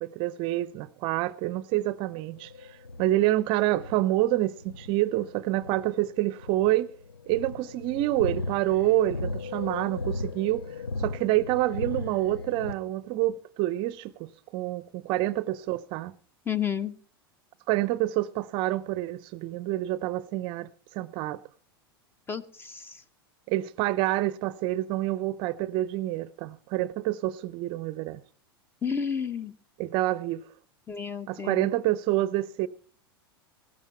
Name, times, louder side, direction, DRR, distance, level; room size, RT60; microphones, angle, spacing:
voice 1, 0.0-2.5 3.0-6.9 7.3-10.6 11.0-16.1 17.7-20.7 20.9-21.4 23.5-28.2 29.8-30.5 31.3-32.7, right 15 dB, 45° right, 0.6 m, -27 dB
sound 1, 2.3-12.7, left 3 dB, 85° left, 0.7 m, -37 dB
voice 2, 16.5-16.9 22.3-23.0 28.8-29.5 30.9-31.7, left 7 dB, 15° left, 0.9 m, -31 dB
16.0 x 13.5 x 4.4 m
figure-of-eight pair, 90°, 13 cm